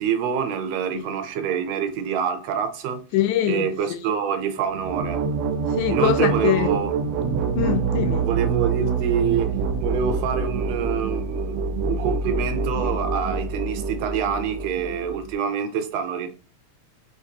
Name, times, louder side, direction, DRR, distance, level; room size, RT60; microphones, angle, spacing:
voice 1, 0.0-3.0 3.4-5.2 5.9-6.9 8.2-16.3, right 7 dB, 75° right, 1.7 m, -26 dB
voice 2, 3.1-3.7 5.7-6.7 7.6-8.3, left 11 dB, 90° left, 2.1 m, -23 dB
sound 1, 4.7-15.3, right 5 dB, 90° right, 1.2 m, -26 dB
5.1 x 3.4 x 2.7 m
omnidirectional pair, 3.4 m